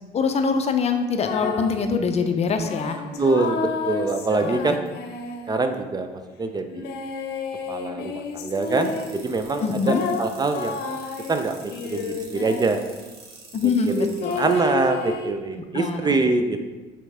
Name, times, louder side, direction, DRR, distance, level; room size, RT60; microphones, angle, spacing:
voice 1, 0.1-3.0 4.4-4.8 9.6-10.0 13.5-14.4 15.7-16.2, left 5 dB, 40° left, 6 dB, 0.6 m, -24 dB
sound 1, 1.2-1.9 2.6-5.8 6.7-9.2 9.8-12.9 14.2-15.3, left 4 dB, 75° left, 0.8 m, -31 dB
voice 2, 3.2-4.8 5.5-6.8 7.7-10.8 11.3-12.8 13.6-13.7 14.0-16.6, right 3 dB, 25° right, 7 dB, 0.4 m, -24 dB
sound 2, 8.5-14.5, right 4 dB, 65° right, 1.7 m, -46 dB
5.2 x 4.4 x 4.8 m, 1.2 s
cardioid pair, 110°, 17 cm